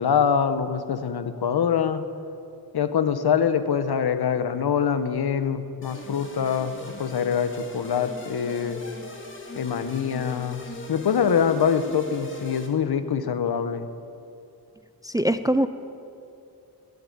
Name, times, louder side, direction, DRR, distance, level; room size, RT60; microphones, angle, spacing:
voice 1, 0.0-2.0 2.7-8.8 9.6-10.6 10.9-13.9, left 7 dB, 75° left, 11 dB, 0.9 m, -24 dB
sound 1, 5.8-12.7, left 2 dB, 30° left, 1.9 m, -40 dB
voice 2, 15.0-15.7, right 1 dB, 10° right, 12 dB, 0.3 m, -22 dB
11.0 x 9.8 x 10.0 m, 2.6 s
wide cardioid pair, 130°, 38 cm